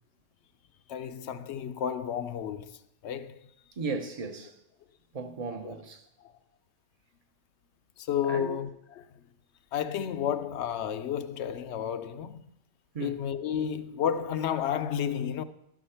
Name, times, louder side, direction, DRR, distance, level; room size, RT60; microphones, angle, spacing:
voice 1, 0.9-2.7 3.0-3.4 5.6-5.7 8.0-8.7 9.0-9.1 9.7-12.4 13.0-15.4, left 9 dB, 70° left, 0.8 m, -31 dB
voice 2, 3.8-4.6 5.1-6.0 8.2-8.5 12.9-13.2, right 4 dB, 35° right, 0.7 m, -36 dB
12.0 x 4.9 x 5.6 m
omnidirectional pair, 1.3 m